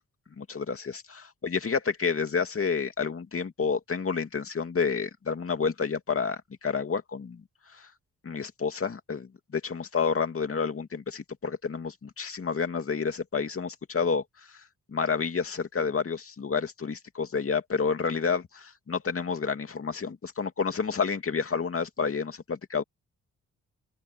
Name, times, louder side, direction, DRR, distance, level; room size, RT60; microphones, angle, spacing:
voice 1, 0.4-7.4 7.7-7.9 8.2-14.2 14.9-22.8, left 5 dB, 45° left, 2.5 m, -29 dB
open air
cardioid pair, 90°, 31 cm